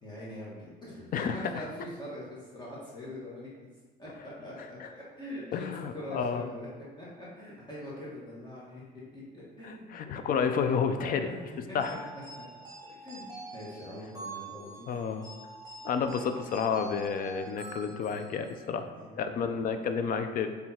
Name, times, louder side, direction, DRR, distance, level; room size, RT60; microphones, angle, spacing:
voice 1, 0.0-3.7 4.0-6.7 7.0-8.8 9.1-10.1 11.0-11.8 12.4-12.5 13.0-14.9 18.7-19.5, left 1 dB, 25° left, -7 dB, 1.6 m, -43 dB
voice 2, 1.1-1.6 4.8-4.9 5.5-6.4 9.6-11.3 11.7-11.9 14.9-15.2 15.8-18.9 19.2-20.5, left 6 dB, 55° left, 8 dB, 0.5 m, -30 dB
sound 1, 11.8-18.7, right 3 dB, 20° right, 1.6 m, -46 dB
6.4 x 3.4 x 4.3 m, 1.4 s
cardioid pair, 110°, 17 cm